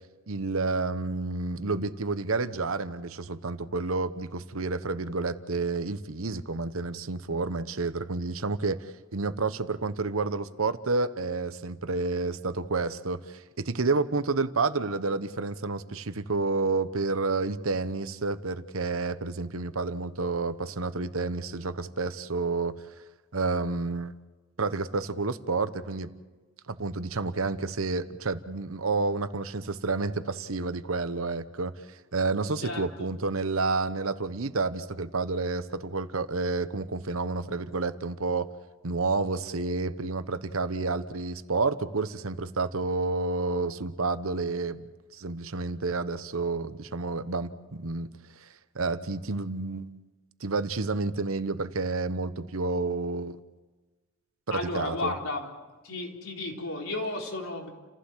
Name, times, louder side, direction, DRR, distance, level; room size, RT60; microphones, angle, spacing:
voice 1, 0.3-8.8 9.1-22.8 23.3-24.1 24.6-26.1 26.7-38.5 38.8-48.1 48.4-48.5 48.7-49.9 50.4-53.4 54.5-55.1, right 3 dB, 80° right, 12 dB, 1.1 m, -30 dB
voice 2, 32.6-33.1 54.5-55.5 55.8-57.7, left 2 dB, 90° left, 0 dB, 4.0 m, -33 dB
30.0 x 15.5 x 7.5 m, 1.3 s
head